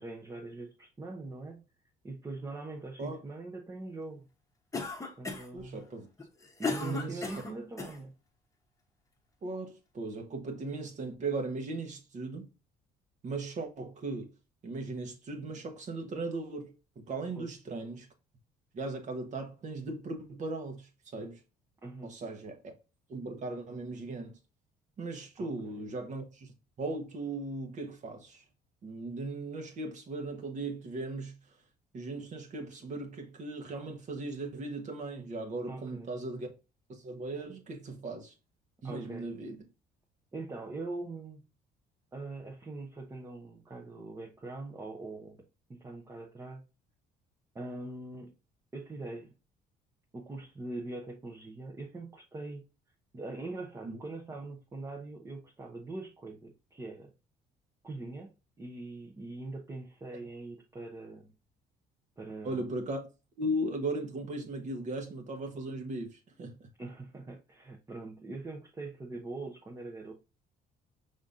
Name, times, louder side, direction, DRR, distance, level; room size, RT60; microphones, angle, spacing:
voice 1, 0.0-1.6 2.0-4.3 5.2-5.8 6.6-8.1 17.4-17.5 21.8-22.2 25.4-25.9 35.7-36.1 38.8-39.3 40.3-41.4 42.1-45.4 45.7-46.6 47.5-48.3 48.7-49.3 50.1-52.6 53.1-57.1 57.8-58.3 58.6-61.3 62.2-62.7 66.8-70.1, right 2 dB, 20° right, 0.8 m, -42 dB
Cough, 4.7-5.6 6.2-8.0, left 4 dB, 20° left, 1.0 m, -36 dB
voice 2, 5.5-6.1 6.8-7.2 9.4-12.5 13.2-14.3 14.6-18.1 18.7-21.4 22.0-22.7 23.1-24.3 25.0-28.4 28.8-31.4 31.9-36.5 36.9-38.3 38.8-39.6 53.8-54.0 62.4-63.0 63.4-66.6, right 2 dB, 45° right, 1.1 m, -37 dB
5.1 x 3.7 x 2.6 m
cardioid pair, 110°, 17 cm